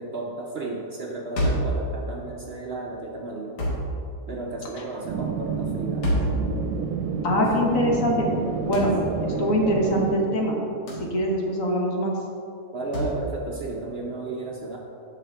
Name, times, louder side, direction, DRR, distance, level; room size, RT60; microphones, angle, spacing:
voice 1, 0.0-3.5 4.3-6.3 12.7-14.8, right 2 dB, 55° right, -2 dB, 0.7 m, -33 dB
sound 1, 1.4-1.8 3.6-3.9 6.0-6.4 8.7-9.0 10.9-11.1 12.9-13.2, equal, 85° left, 2.0 m, -25 dB
sound 2, 5.0-10.2, right 5 dB, 90° right, 1.2 m, -29 dB
voice 2, 7.2-8.3 8.6-8.9 9.2-10.6 11.0-12.2, equal, 55° left, -1 dB, 1.4 m, -23 dB
8.5 x 5.9 x 3.5 m, 2.6 s
omnidirectional pair, 1.7 m